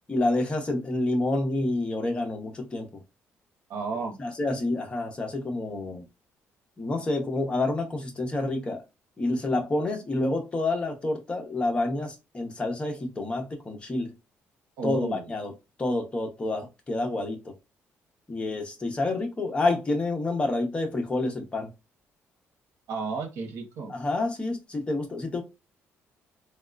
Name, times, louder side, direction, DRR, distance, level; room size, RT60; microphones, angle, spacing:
voice 1, 0.1-2.9 4.2-6.1 6.8-8.8 9.2-14.1 14.8-15.5 15.8-17.5 18.3-21.7 23.9-25.4, left 2 dB, 25° left, 0.8 m, -28 dB
voice 2, 3.7-4.2 14.8-15.3 22.9-23.9, right 4 dB, 85° right, 0.9 m, -32 dB
3.4 x 2.3 x 2.4 m
cardioid pair, 125°, 5 cm